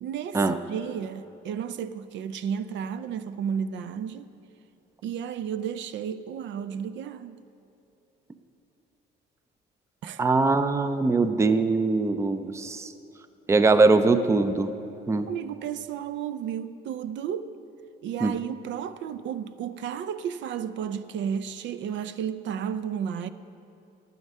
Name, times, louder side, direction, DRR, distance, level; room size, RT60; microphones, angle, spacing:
voice 1, 0.0-4.3 5.0-7.4 10.0-10.2 15.3-17.6 18.0-23.3, right 8 dB, 70° right, 0.5 m, -33 dB
voice 2, 10.2-12.9 13.5-14.7 15.1-15.3 18.2-18.3, right 3 dB, 15° right, 0.5 m, -22 dB
11.0 x 9.4 x 5.4 m
cardioid pair, 120°, 20 cm